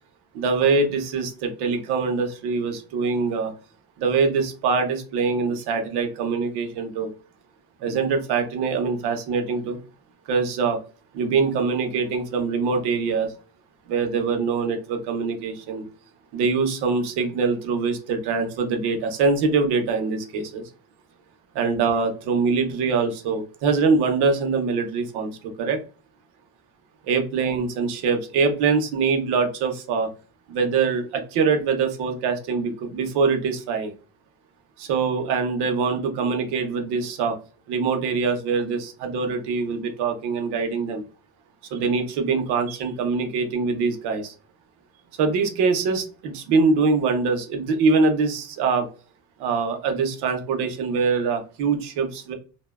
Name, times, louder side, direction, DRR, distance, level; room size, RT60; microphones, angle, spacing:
voice 1, 0.3-3.5 4.0-7.1 7.8-9.8 10.3-10.8 11.1-13.3 13.9-15.8 16.3-20.6 21.5-25.3 25.6-25.8 27.0-30.1 30.5-33.9 34.8-37.4 37.7-41.0 41.7-44.3 45.2-48.9 49.4-52.3, right 4 dB, 60° right, 5 dB, 0.6 m, -23 dB
2.6 x 2.1 x 2.2 m, 0.35 s
cardioid pair, 175°, 46 cm